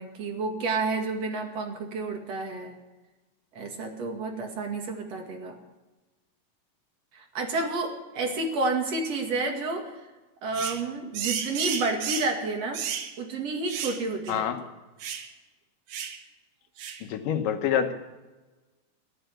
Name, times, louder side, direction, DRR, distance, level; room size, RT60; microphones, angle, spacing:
voice 1, 0.0-2.8 3.5-5.6 7.1-9.9 10.4-12.8 13.2-14.5, right 3 dB, 55° right, 2 dB, 3.1 m, -30 dB
sound 1, 10.5-10.8 11.1-12.4 12.7-13.1 13.7-14.0 14.3-14.4 15.0-15.3 15.9-16.2 16.8-17.0, right 8 dB, 75° right, 2.8 m, -33 dB
voice 2, 14.3-14.6 17.0-17.9, left 8 dB, 90° left, 7 dB, 2.9 m, -26 dB
14.5 x 11.5 x 8.4 m, 1.2 s
omnidirectional pair, 3.7 m